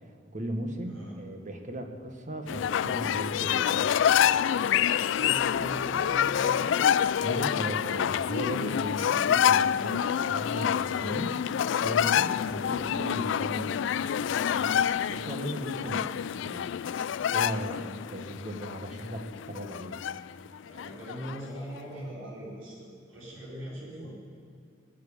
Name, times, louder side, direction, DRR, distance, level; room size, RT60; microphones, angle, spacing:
voice 1, 0.3-3.9 7.2-11.4 11.8-14.2 14.4-16.0 16.3-16.8 17.3-20.0, right 1 dB, 40° right, 4 dB, 1.5 m, -37 dB
sound 1, 2.5-21.4, left 9 dB, 65° left, 0.3 m, -27 dB
voice 2, 4.9-6.7 15.7-16.1 17.7-17.9 20.7-24.2, equal, 80° right, -7 dB, 4.3 m, -41 dB
19.5 x 7.3 x 10.0 m, 2.3 s
head